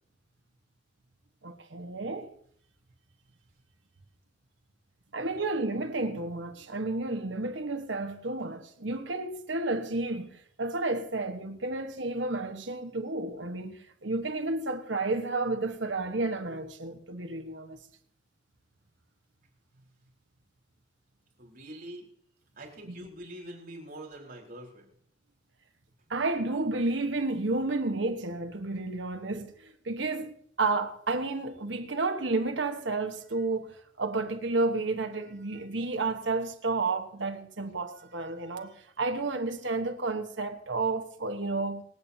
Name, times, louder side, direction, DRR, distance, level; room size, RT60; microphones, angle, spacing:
voice 1, 1.4-2.3 5.1-17.8 22.9-23.0 26.1-41.8, right 3 dB, 70° right, 1.3 m, -31 dB
voice 2, 21.4-22.1 22.6-24.9, right 1 dB, 50° right, 4.2 m, -44 dB
26.0 x 8.9 x 2.8 m
head